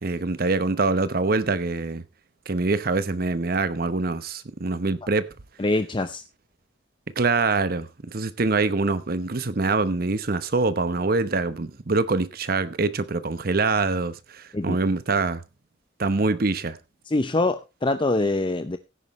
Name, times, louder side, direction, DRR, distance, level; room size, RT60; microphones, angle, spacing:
voice 1, 0.0-2.0 2.5-5.3 7.2-15.4 16.0-16.8, right 3 dB, 55° right, 0.9 m, -24 dB
voice 2, 5.6-6.2 14.5-14.8 17.1-18.8, left 2 dB, 25° left, 0.6 m, -24 dB
16.0 x 9.5 x 3.1 m
head